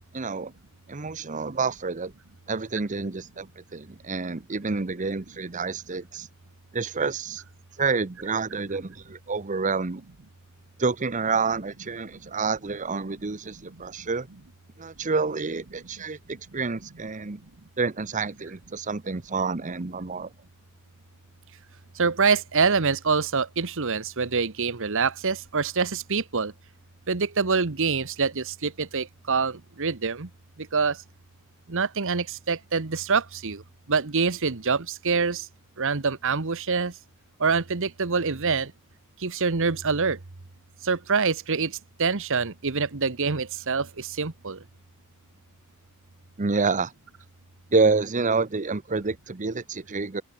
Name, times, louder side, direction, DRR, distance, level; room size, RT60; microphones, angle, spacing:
voice 1, 0.1-0.5 0.9-2.1 2.5-6.3 6.7-7.4 7.8-10.0 10.8-14.3 14.8-17.4 17.8-20.3 46.4-46.9 47.7-50.2, right 4 dB, 35° right, 0.8 m, -28 dB
voice 2, 22.0-26.5 27.1-30.3 30.7-31.0 31.7-33.6 33.9-35.5 35.8-36.9 37.4-38.7 39.2-40.2 40.8-41.7 42.0-44.6, right 5 dB, 60° right, 1.2 m, -25 dB
open air
head